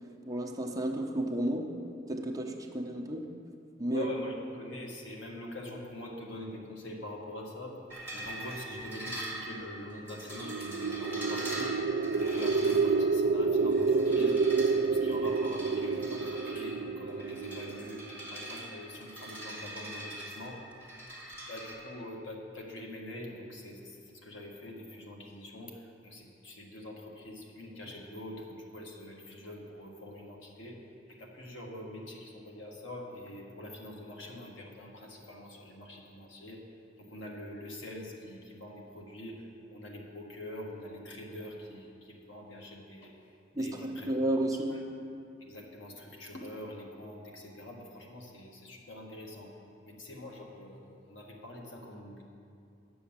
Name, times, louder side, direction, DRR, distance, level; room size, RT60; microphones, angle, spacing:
voice 1, 0.3-1.7 2.1-3.3 3.8-4.1 43.5-44.7, right 1 dB, 20° right, 0 dB, 0.8 m, -32 dB
voice 2, 3.9-7.8 8.1-11.8 12.1-14.4 14.7-20.6 21.4-30.8 31.2-36.6 37.0-43.1 43.6-44.1 44.7-44.8 45.4-49.5 49.8-52.2, left 1 dB, 80° left, 0 dB, 1.6 m, -44 dB
sound 1, 7.9-21.7, right 1 dB, 15° left, 2.0 m, -43 dB
sound 2, 10.3-18.4, right 4 dB, 85° right, 0.4 m, -29 dB
9.3 x 7.0 x 7.2 m, 2.5 s
head